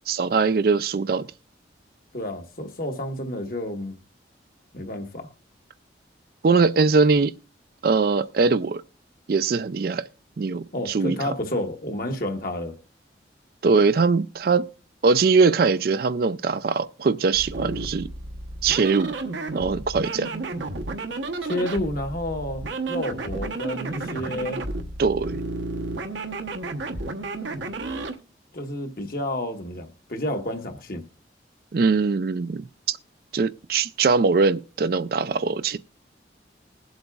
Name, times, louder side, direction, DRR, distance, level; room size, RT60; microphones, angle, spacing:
voice 1, 0.1-1.3 6.4-7.3 7.8-8.8 9.3-10.0 10.4-11.3 13.6-14.7 15.0-18.1 18.6-19.1 19.5-20.4 25.0-25.4 31.7-33.0 33.3-35.8, right 4 dB, 50° right, 0.4 m, -21 dB
voice 2, 2.1-3.9 4.7-5.3 10.7-12.8 21.4-24.6 28.5-31.0, left 1 dB, 50° left, 1.3 m, -30 dB
sound 1, 17.3-28.2, right 2 dB, 85° right, 1.0 m, -32 dB
20.5 x 7.9 x 2.4 m
head